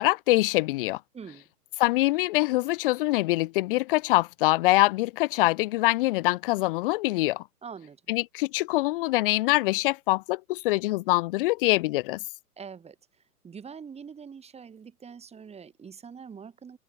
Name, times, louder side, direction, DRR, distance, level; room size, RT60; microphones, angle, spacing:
voice 1, 0.0-1.0 1.8-7.4 8.1-12.2, left 20 dB, 35° left, 0.7 m, -24 dB
voice 2, 1.1-1.5 7.6-8.0 12.6-16.8, right 6 dB, 15° right, 3.1 m, -44 dB
hypercardioid pair, 115°, 47 cm